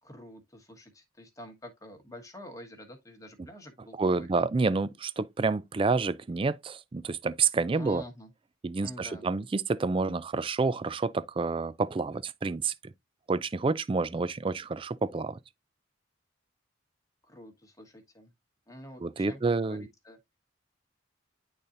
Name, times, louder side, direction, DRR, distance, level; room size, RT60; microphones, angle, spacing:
voice 1, 0.0-4.5 7.7-8.3 8.8-9.3 17.2-18.3 18.7-20.2, equal, 15° left, 1.3 m, -47 dB
voice 2, 4.0-8.0 8.6-12.7 13.3-15.4 19.0-19.9, right 4 dB, 25° right, 0.3 m, -29 dB
10.5 x 4.1 x 2.5 m
head